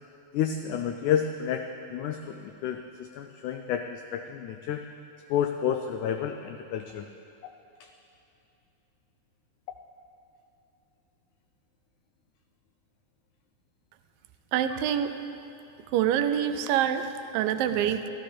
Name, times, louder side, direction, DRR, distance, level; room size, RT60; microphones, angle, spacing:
voice 1, 0.3-4.8 5.3-7.1, left 8 dB, 90° left, 6 dB, 1.7 m, -30 dB
voice 2, 14.5-15.1 15.9-18.1, right 10 dB, 85° right, 9 dB, 2.2 m, -26 dB
13.5 x 13.0 x 4.3 m, 2.8 s
omnidirectional pair, 4.1 m